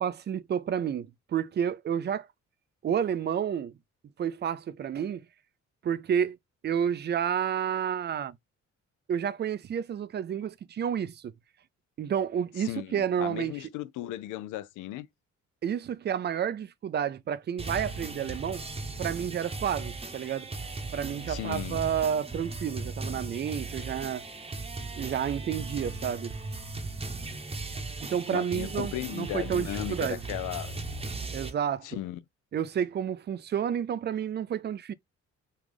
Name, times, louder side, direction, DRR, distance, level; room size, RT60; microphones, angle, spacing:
voice 1, 0.0-2.3 2.8-3.8 4.2-5.2 5.8-6.4 6.6-8.4 9.1-11.3 12.0-13.5 15.6-18.6 19.0-20.5 20.9-24.2 24.9-26.4 28.0-30.2 31.3-31.9 32.5-34.9, right 8 dB, 35° right, 0.4 m, -30 dB
voice 2, 12.6-15.1 21.3-21.8 28.3-30.7 31.8-32.2, left 14 dB, 85° left, 0.5 m, -36 dB
sound 1, 17.6-31.5, right 3 dB, 20° right, 0.8 m, -37 dB
3.3 x 2.4 x 3.5 m
cardioid pair, 90°, 30 cm